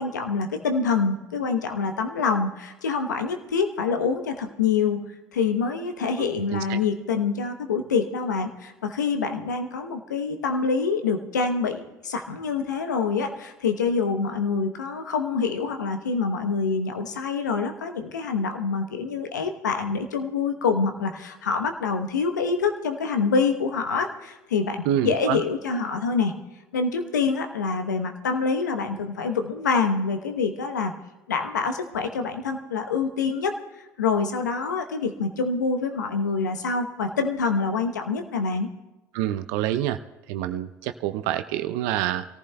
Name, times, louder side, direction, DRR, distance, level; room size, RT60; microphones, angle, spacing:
voice 1, 0.0-5.0 5.3-26.3 26.7-30.9 31.3-33.6 34.0-38.7, left 5 dB, 85° left, 6 dB, 0.9 m, -26 dB
voice 2, 6.2-6.8 24.9-25.4 39.1-40.0 40.3-42.2, right 12 dB, 70° right, 11 dB, 0.5 m, -27 dB
28.5 x 14.5 x 2.2 m, 1.0 s
hypercardioid pair, 65°, 9 cm